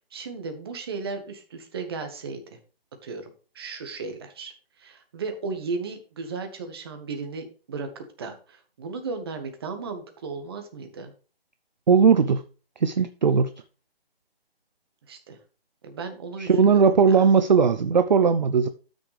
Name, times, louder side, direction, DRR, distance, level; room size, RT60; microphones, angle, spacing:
voice 1, 0.0-2.6 3.0-11.1 15.1-15.4 15.8-17.2, right 4 dB, 25° right, 1.4 m, -35 dB
voice 2, 11.9-12.4 12.8-13.5 16.4-18.7, right 6 dB, 45° right, 0.6 m, -18 dB
12.5 x 6.3 x 3.3 m
hypercardioid pair, 170°, 30 cm